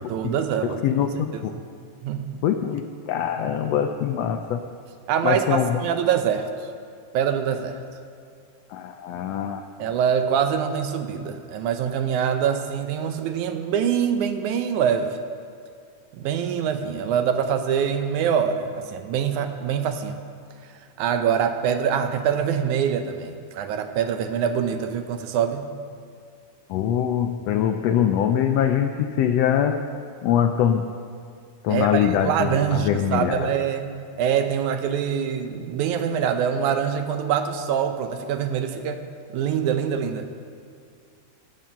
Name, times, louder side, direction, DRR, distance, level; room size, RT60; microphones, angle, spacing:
voice 1, 0.1-0.8 2.0-2.4 5.1-6.7 7.1-7.8 9.8-15.2 16.1-20.2 21.0-25.7 31.7-33.9 34.2-39.0 39.3-40.3, right 8 dB, 80° right, 7 dB, 2.1 m, -24 dB
voice 2, 0.6-1.5 2.4-4.6 5.2-5.8 8.7-9.7 26.7-29.8 30.2-30.9 31.6-33.5, left 9 dB, 85° left, 6 dB, 1.4 m, -23 dB
18.0 x 7.6 x 5.6 m, 2.2 s
omnidirectional pair, 3.6 m